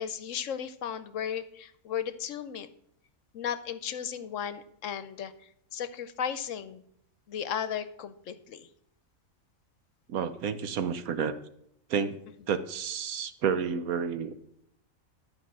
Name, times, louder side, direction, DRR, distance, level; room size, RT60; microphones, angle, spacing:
voice 1, 0.0-2.7 3.3-5.3 5.7-6.8 7.3-8.7, left 8 dB, 70° left, 13 dB, 0.9 m, -35 dB
voice 2, 10.1-11.3 11.9-12.2 12.5-14.3, right 7 dB, 80° right, 11 dB, 1.3 m, -30 dB
11.5 x 5.2 x 7.4 m, 0.72 s
omnidirectional pair, 1.5 m